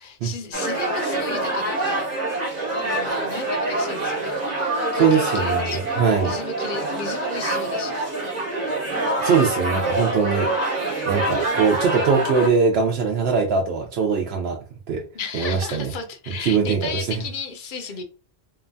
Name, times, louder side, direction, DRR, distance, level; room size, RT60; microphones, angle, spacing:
voice 1, 0.0-2.1 2.8-5.8 6.1-8.0 15.1-18.0, left 5 dB, 60° left, 6 dB, 0.6 m, -34 dB
sound 1, 0.5-12.5, right 2 dB, 45° right, 0.9 m, -25 dB
voice 2, 4.9-6.3 9.2-10.5 11.1-14.6 14.9-15.0 15.3-15.9 16.4-17.2, right 5 dB, 75° right, 1 dB, 0.8 m, -21 dB
2.8 x 2.1 x 2.5 m, 0.35 s
omnidirectional pair, 1.1 m